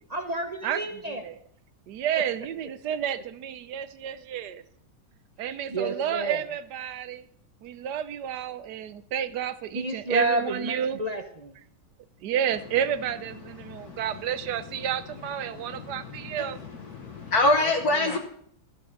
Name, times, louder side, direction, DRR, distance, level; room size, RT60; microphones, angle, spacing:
voice 1, 0.1-1.2 5.4-6.4 9.7-11.5 17.9-18.2, right 2 dB, 35° right, 6 dB, 0.6 m, -30 dB
voice 2, 0.6-1.4 1.9-4.6 5.4-7.3 7.6-11.0 12.2-16.6, right 9 dB, 70° right, 14 dB, 1.2 m, -31 dB
voice 3, 13.6-14.0 15.5-16.5 16.9-18.2, left 2 dB, 60° left, 2 dB, 1.6 m, -26 dB
13.5 x 8.3 x 6.5 m, 0.66 s
omnidirectional pair, 1.9 m